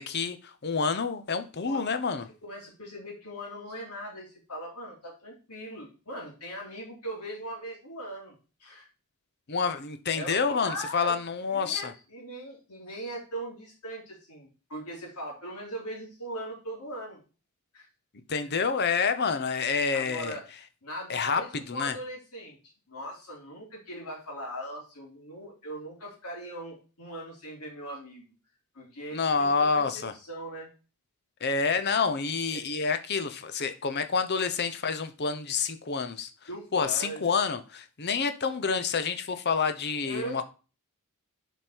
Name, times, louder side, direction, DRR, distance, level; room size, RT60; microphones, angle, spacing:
voice 1, 0.0-2.3 9.5-11.9 18.3-20.4 21.1-21.4 21.7-21.9 29.1-30.1 31.4-36.3 36.7-40.4, left 5 dB, 50° left, 0.8 m, -28 dB
voice 2, 2.4-8.3 8.6-8.9 10.1-11.2 11.5-17.2 17.7-17.9 19.9-20.4 20.8-28.3 28.7-30.7 32.5-32.6 36.5-37.3 40.0-40.4, right 1 dB, 85° left, 3.4 m, -40 dB
7.6 x 5.1 x 4.5 m
head